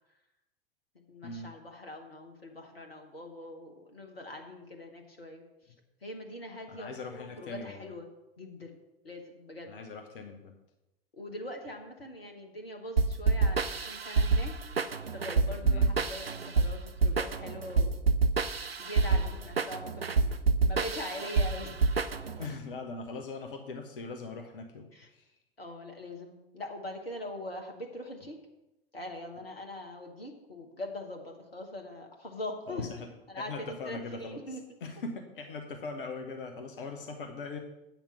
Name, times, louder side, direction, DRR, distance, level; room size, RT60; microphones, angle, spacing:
voice 1, 1.1-5.7 6.0-8.1 8.4-8.8 9.0-9.8 11.1-14.5 15.1-18.1 18.8-21.8 22.1-22.5 24.9-25.1 25.6-28.4 28.9-32.9 33.3-34.8, left 1 dB, 80° left, 3 dB, 1.3 m, -42 dB
voice 2, 6.7-7.9 9.7-10.5 15.6-15.9 19.1-19.4 22.4-25.3 32.7-32.9 33.4-34.4 34.8-37.6, left 3 dB, 65° left, 5 dB, 1.1 m, -41 dB
sound 1, 13.0-22.5, right 4 dB, 90° right, 0.5 m, -27 dB
8.7 x 5.9 x 7.0 m, 0.95 s
figure-of-eight pair, 80°, 29 cm